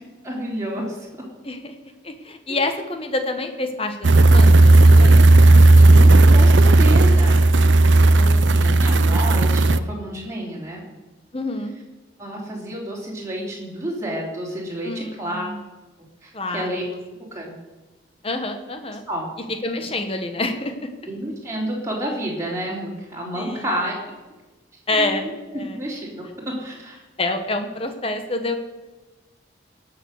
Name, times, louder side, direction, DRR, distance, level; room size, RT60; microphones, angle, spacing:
voice 1, 0.2-1.1 5.8-7.4 8.1-10.8 12.2-15.5 16.2-16.8 17.2-17.5 19.1-19.3 19.8-19.9 21.1-23.9 24.9-27.0, right 1 dB, 15° right, -4 dB, 3.3 m, -30 dB
voice 2, 2.0-5.2 11.3-11.7 14.8-15.6 16.3-16.8 18.2-19.0 19.6-20.9 23.3-23.7 24.9-25.8 27.2-28.6, left 2 dB, 30° left, 7 dB, 1.3 m, -27 dB
sound 1, 4.0-9.8, right 2 dB, 75° right, 0.6 m, -12 dB
18.0 x 6.9 x 6.5 m, 1.2 s
head